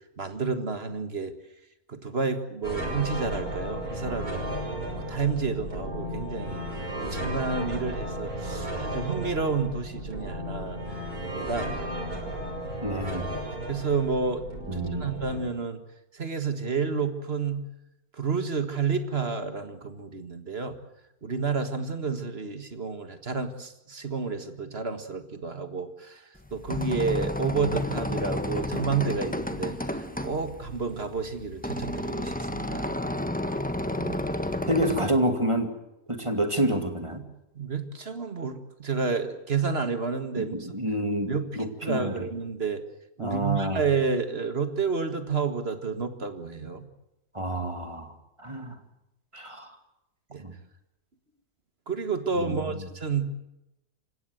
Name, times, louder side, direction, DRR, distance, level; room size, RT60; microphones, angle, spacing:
voice 1, 0.2-1.3 1.9-4.4 4.9-10.8 11.2-11.8 13.7-14.4 14.7-15.8 16.1-17.6 18.2-20.8 21.2-26.2 26.5-32.9 37.6-40.5 41.3-42.8 43.2-46.9 50.3-50.4 51.9-53.3, right 5 dB, 45° right, 9 dB, 1.9 m, -30 dB
sound 1, 2.6-15.4, equal, 80° right, 6.5 m, -34 dB
voice 2, 12.8-13.2 14.7-15.1 33.9-34.2 34.7-35.7 36.1-37.2 40.4-42.2 43.2-43.8 47.3-48.1 48.4-48.7 49.3-49.7 50.4-50.5 52.4-52.6, right 1 dB, 20° right, 6 dB, 2.4 m, -28 dB
sound 2, 26.4-35.1, left 1 dB, 5° left, 1.3 m, -31 dB
28.0 x 16.5 x 8.0 m, 0.89 s
omnidirectional pair, 1.5 m